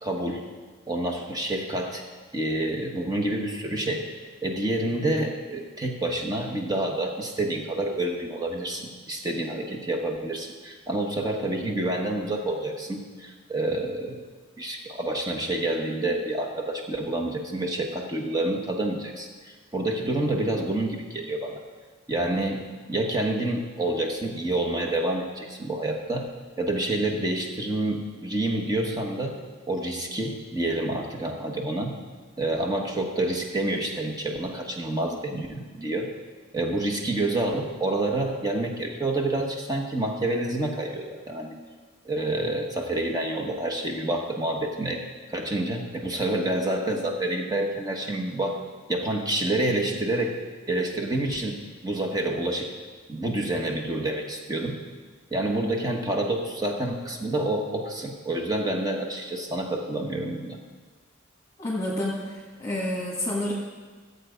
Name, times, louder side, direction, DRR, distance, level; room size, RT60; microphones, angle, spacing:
voice 1, 0.0-0.4 0.9-2.0 2.3-4.1 4.4-14.2 14.6-21.6 22.1-29.4 29.7-31.9 32.4-36.1 36.5-41.6 42.0-45.0 45.3-48.6 48.9-50.4 50.7-52.7 53.1-54.8 55.3-60.6, right 1 dB, 20° right, 2 dB, 1.2 m, -28 dB
voice 2, 61.6-63.5, left 1 dB, 15° left, -5 dB, 1.8 m, -29 dB
14.0 x 8.0 x 5.1 m, 1.4 s
head